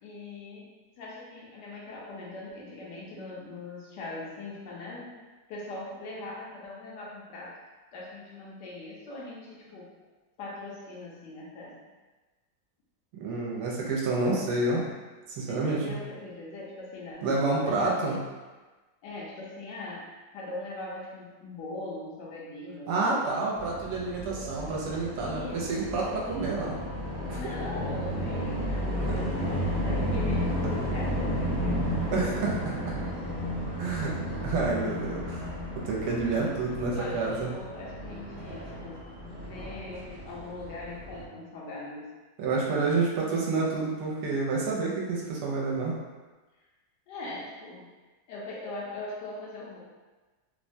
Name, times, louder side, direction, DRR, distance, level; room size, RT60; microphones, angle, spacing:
voice 1, 0.0-5.2 5.5-7.6 7.9-9.9 10.4-11.8 15.5-18.2 19.0-23.7 25.2-26.0 27.3-32.1 36.7-39.0 39.4-42.1 47.1-47.9 48.3-49.8, left 2 dB, 80° left, -4 dB, 1.2 m, -41 dB
voice 2, 13.1-14.8 15.3-16.0 17.2-18.2 22.9-26.8 27.3-27.5 32.1-33.0 33.8-34.1 34.4-35.5 35.7-37.5 42.4-45.9, right 3 dB, 75° right, -4 dB, 1.1 m, -29 dB
sound 1, 23.5-41.2, equal, 5° left, 0.5 m, -33 dB
3.3 x 2.1 x 2.6 m, 1.3 s
omnidirectional pair, 1.9 m